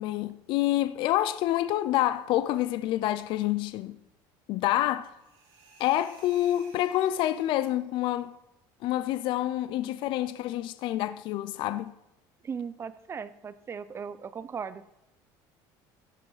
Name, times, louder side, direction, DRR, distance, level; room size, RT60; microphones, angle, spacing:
voice 1, 0.0-4.0 4.5-5.1 5.8-8.4 8.8-11.9, left 13 dB, 60° left, 0.5 m, -27 dB
sound 1, 5.2-7.9, right 4 dB, 85° right, 3.9 m, -56 dB
voice 2, 12.4-14.9, right 6 dB, 25° right, 0.6 m, -37 dB
15.0 x 6.0 x 4.9 m
cardioid pair, 125°, 10 cm